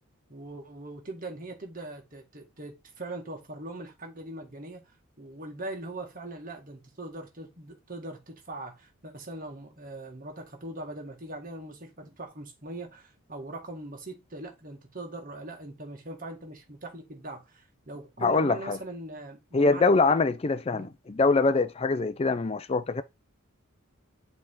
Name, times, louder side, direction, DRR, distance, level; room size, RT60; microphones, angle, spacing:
voice 1, 0.3-4.9 5.2-20.0 20.7-20.9, right 2 dB, 40° right, 1.9 m, -41 dB
voice 2, 18.2-18.8 19.5-23.0, left 3 dB, 30° left, 0.5 m, -24 dB
7.5 x 3.4 x 3.8 m
head